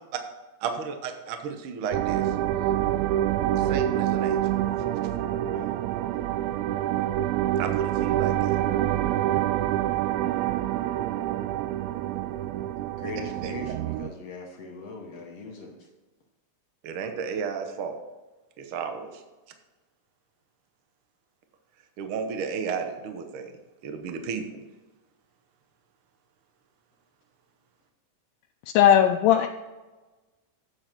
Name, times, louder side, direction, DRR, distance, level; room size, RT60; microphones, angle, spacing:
voice 1, 0.6-2.3 3.6-4.6 7.6-8.6 13.4-13.5 16.8-18.0 18.6-19.2 22.0-23.5 23.8-24.6, right 6 dB, 60° right, 6 dB, 1.5 m, -33 dB
sound 1, 1.9-14.1, right 12 dB, 85° right, 1.6 m, -26 dB
voice 2, 12.9-15.7, left 4 dB, 60° left, 1 dB, 2.0 m, -40 dB
voice 3, 28.7-29.5, left 10 dB, 90° left, 4 dB, 2.2 m, -17 dB
8.8 x 7.6 x 4.5 m, 1.2 s
omnidirectional pair, 3.6 m